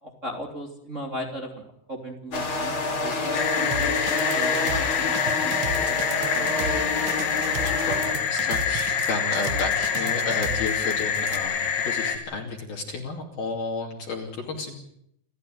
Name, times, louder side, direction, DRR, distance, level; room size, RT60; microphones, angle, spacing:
voice 1, 0.0-6.0 6.3-6.5, equal, 20° right, 1 dB, 2.6 m, -38 dB
sound 1, 2.3-8.1, left 2 dB, 35° left, 4.5 m, -28 dB
sound 2, 3.3-12.2, left 7 dB, 70° left, 5.2 m, -26 dB
sound 3, 3.7-11.4, right 3 dB, 60° right, 3.7 m, -35 dB
voice 2, 7.6-14.7, left 3 dB, 55° left, -1 dB, 4.4 m, -32 dB
29.0 x 14.5 x 9.4 m, 0.74 s
omnidirectional pair, 5.5 m